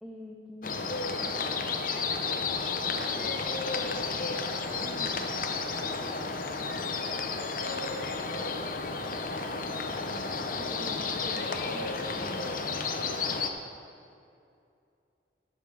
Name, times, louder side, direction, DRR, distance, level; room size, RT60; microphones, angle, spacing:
voice 1, 0.0-1.5 10.6-12.5, left 1 dB, ahead, -2 dB, 0.7 m, -45 dB
sound 1, 0.6-13.5, left 4 dB, 50° left, 0.7 m, -32 dB
voice 2, 2.9-4.4 4.8-5.2, right 1 dB, 75° right, -2 dB, 1.8 m, -46 dB
13.0 x 5.3 x 6.3 m, 2.5 s
head